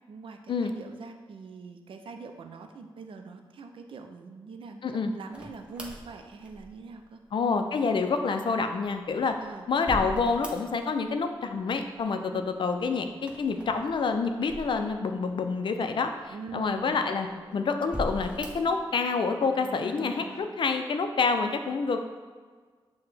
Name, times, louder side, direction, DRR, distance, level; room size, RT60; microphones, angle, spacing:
voice 1, 0.1-7.2 9.4-9.7 12.3-12.5 16.3-17.1, right 4 dB, 70° right, 5 dB, 0.4 m, -43 dB
sound 1, 5.3-7.0 8.8-11.0 11.3-12.0 13.1-15.3 15.9-16.0 16.8-17.3 17.8-18.8, right 1 dB, 10° right, 0.6 m, -40 dB
voice 2, 7.3-9.4 9.7-17.3 17.5-22.0, left 4 dB, 60° left, 6 dB, 0.4 m, -27 dB
sound 2, 12.7-13.8 17.0-20.4, left 1 dB, 35° left, 0.8 m, -48 dB
5.8 x 2.1 x 3.2 m, 1.5 s
cardioid pair, 60°, 9 cm